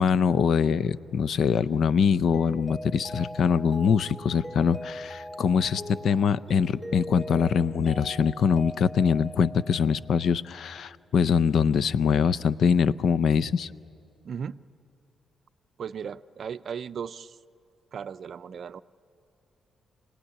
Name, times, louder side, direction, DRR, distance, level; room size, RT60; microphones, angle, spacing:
voice 1, 0.0-13.7, left 6 dB, 65° left, 17 dB, 0.5 m, -23 dB
Mallet percussion, 2.3-10.5, equal, 5° left, 0.7 m, -40 dB
voice 2, 14.2-14.6 15.8-17.4 17.9-18.8, right 7 dB, 55° right, 14 dB, 0.5 m, -36 dB
26.0 x 18.0 x 9.9 m, 2.6 s
cardioid pair, 115°, 0 cm